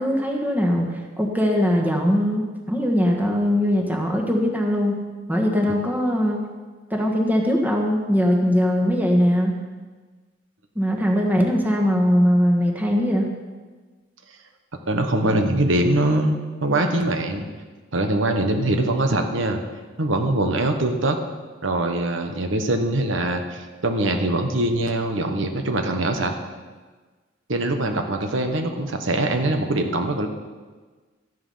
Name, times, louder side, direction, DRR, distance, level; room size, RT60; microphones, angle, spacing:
voice 1, 0.0-5.0 5.3-6.4 6.9-9.5 10.7-13.3, equal, 10° right, 1 dB, 1.5 m, -21 dB
voice 2, 14.9-16.4 16.6-17.5 17.9-19.6 20.0-21.2 21.6-26.3 27.5-30.3, right 1 dB, 70° right, 5 dB, 1.2 m, -22 dB
13.5 x 11.0 x 5.6 m, 1.4 s
head